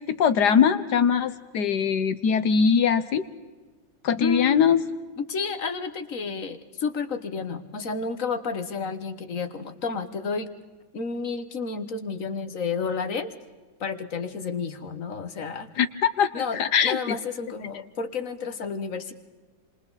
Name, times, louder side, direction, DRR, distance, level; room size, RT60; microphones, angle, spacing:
voice 1, 0.1-3.2 4.0-4.8 15.8-17.2, left 7 dB, 65° left, 12 dB, 1.5 m, -22 dB
voice 2, 4.2-4.7 5.2-10.5 10.9-13.3 13.8-15.7 16.3-19.1, left 5 dB, 45° left, 10 dB, 1.6 m, -31 dB
28.0 x 27.0 x 4.1 m, 1.3 s
omnidirectional pair, 2.1 m